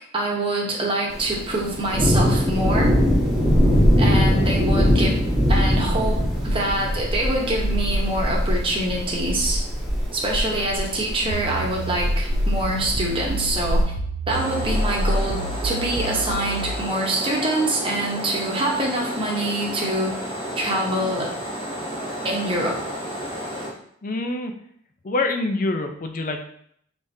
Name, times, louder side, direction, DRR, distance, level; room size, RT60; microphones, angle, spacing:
voice 1, 0.1-3.0 4.0-5.2 5.5-9.6 10.1-13.8 14.3-20.1 20.6-21.3 22.2-22.8, right 1 dB, 25° right, -2 dB, 1.0 m, -25 dB
Thunder, 1.1-13.8, equal, ahead, 1.2 m, -22 dB
sound 1, 11.3-16.8, right 1 dB, 65° right, 0.5 m, -27 dB
sound 2, 14.3-23.7, equal, 25° left, 1.0 m, -32 dB
voice 2, 24.0-24.5 25.0-26.4, left 2 dB, 45° left, 5 dB, 0.5 m, -25 dB
5.0 x 3.5 x 2.7 m, 0.67 s
head